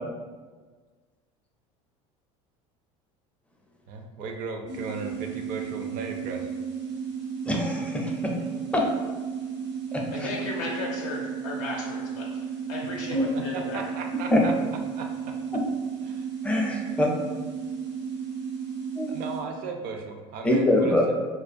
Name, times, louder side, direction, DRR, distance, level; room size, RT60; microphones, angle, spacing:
voice 1, 3.9-6.5 13.3-14.5 14.9-15.1 16.0-16.3 19.1-21.1, right 4 dB, 60° right, 3 dB, 0.4 m, -36 dB
sound 1, 4.7-19.4, right 6 dB, 80° right, 0.8 m, -34 dB
voice 2, 7.5-8.3 8.7-8.8 10.2-10.3 13.1-13.3 14.3-14.4 16.4-17.1 19.0-19.1 20.4-21.1, left 1 dB, 10° left, -1 dB, 0.4 m, -23 dB
voice 3, 10.1-12.3 12.5-13.9, left 3 dB, 75° left, -2 dB, 0.4 m, -35 dB
2.4 x 2.2 x 2.4 m, 1.4 s
supercardioid pair, 90°, 16 cm